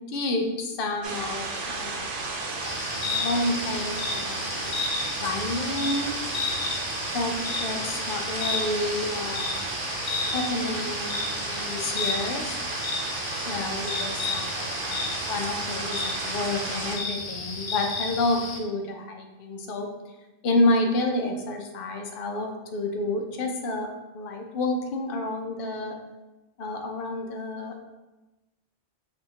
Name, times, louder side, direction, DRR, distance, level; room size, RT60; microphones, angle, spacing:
voice 1, 0.0-2.1 3.0-4.8 5.2-6.2 7.1-9.7 10.3-12.6 13.4-19.9 20.4-23.9 24.1-26.0 26.6-27.7, left 2 dB, 55° left, 2 dB, 0.7 m, -29 dB
sound 1, 1.0-17.0, right 3 dB, 85° right, 1.0 m, -33 dB
sound 2, 2.6-18.6, left 4 dB, 90° left, 1.1 m, -33 dB
5.8 x 2.8 x 2.9 m, 1.1 s
omnidirectional pair, 1.2 m